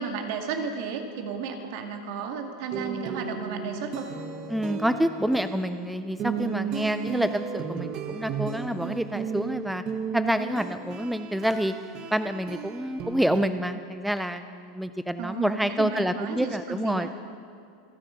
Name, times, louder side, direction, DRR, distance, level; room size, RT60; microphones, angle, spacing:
voice 1, 0.0-4.1 15.2-17.1, right 5 dB, 60° right, 4 dB, 2.0 m, -33 dB
sound 1, 2.7-13.5, right 7 dB, 35° right, 1.2 m, -34 dB
voice 2, 4.5-9.8 10.1-11.7 12.1-17.2, equal, ahead, 10 dB, 0.4 m, -28 dB
27.0 x 9.0 x 5.7 m, 2.4 s
supercardioid pair, 145°, 2 cm